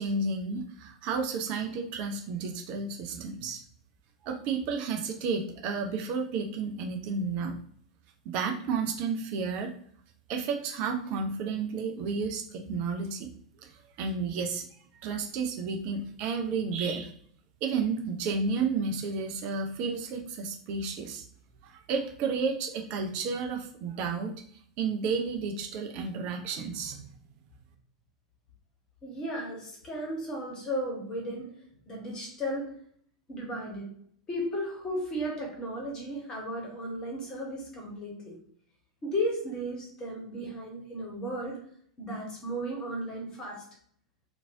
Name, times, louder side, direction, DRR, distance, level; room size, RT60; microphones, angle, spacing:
voice 1, 0.0-3.6 4.2-7.6 8.3-9.7 10.3-13.3 13.6-14.7 15.0-17.1 17.6-21.3 21.6-27.0, right 4 dB, 45° right, 4 dB, 0.4 m, -32 dB
voice 2, 29.0-31.5 31.9-32.8 33.3-33.9 34.3-38.4 39.0-41.6 42.0-43.6, equal, 25° left, -1 dB, 1.2 m, -35 dB
2.9 x 2.5 x 2.6 m, 0.63 s
figure-of-eight pair, 90°, 3 cm